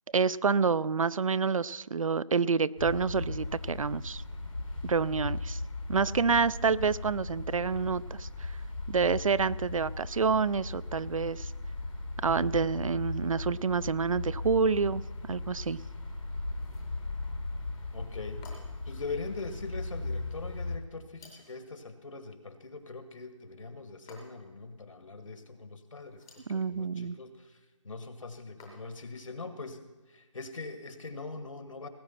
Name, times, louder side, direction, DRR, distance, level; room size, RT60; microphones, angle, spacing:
voice 1, 0.1-4.2 4.8-5.6 5.9-8.6 8.9-11.5 12.2-15.0 15.3-15.8 26.5-27.2, right 5 dB, 85° right, 19 dB, 0.5 m, -28 dB
sound 1, 2.8-20.8, left 2 dB, 90° left, 2.8 m, -37 dB
sound 2, 16.5-17.0 18.4-18.9 21.2-21.7 24.1-24.6 26.0-26.6 28.6-29.1, left 2 dB, 5° left, 0.7 m, -54 dB
voice 2, 17.9-18.5 18.9-29.8 30.1-31.9, left 3 dB, 75° left, 9 dB, 1.9 m, -42 dB
18.0 x 8.8 x 5.8 m, 1.2 s
figure-of-eight pair, 175°, 17 cm